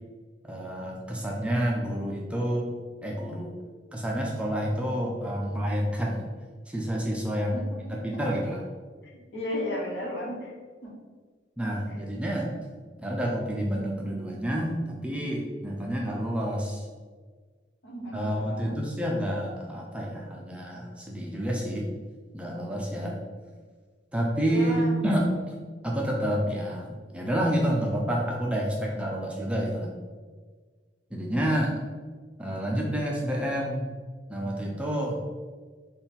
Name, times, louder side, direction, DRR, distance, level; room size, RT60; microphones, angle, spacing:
voice 1, 0.4-2.7 3.0-3.5 3.9-6.2 6.7-8.6 11.6-12.5 13.0-16.9 18.1-21.9 22.3-23.2 24.1-25.5 25.8-26.9 27.1-29.9 31.1-31.8 32.4-33.9 34.3-35.2, equal, 5° right, -2 dB, 0.4 m, -29 dB
voice 2, 7.5-7.8 9.1-10.5 10.8-10.9 17.8-18.8 24.4-24.9, left 1 dB, 75° left, -4 dB, 1.1 m, -34 dB
3.6 x 2.4 x 4.1 m, 1.5 s
head